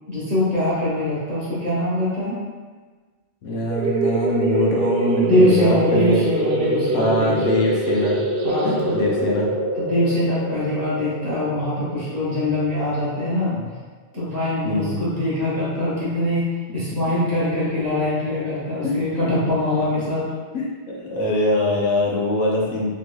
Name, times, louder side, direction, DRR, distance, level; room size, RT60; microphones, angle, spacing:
voice 1, 0.1-2.4 5.2-7.4 8.4-9.0 9.7-13.5 14.1-16.4 16.7-20.3, left 1 dB, 35° right, -10 dB, 1.1 m, -23 dB
voice 2, 3.4-8.2 8.6-9.5 14.6-15.0 16.7-16.8 18.8-19.0 20.5-22.9, left 1 dB, 85° left, -2 dB, 1.0 m, -23 dB
sound 1, 3.7-13.0, right 2 dB, 60° right, 0.5 m, -24 dB
3.2 x 3.0 x 2.2 m, 1.4 s
omnidirectional pair, 1.2 m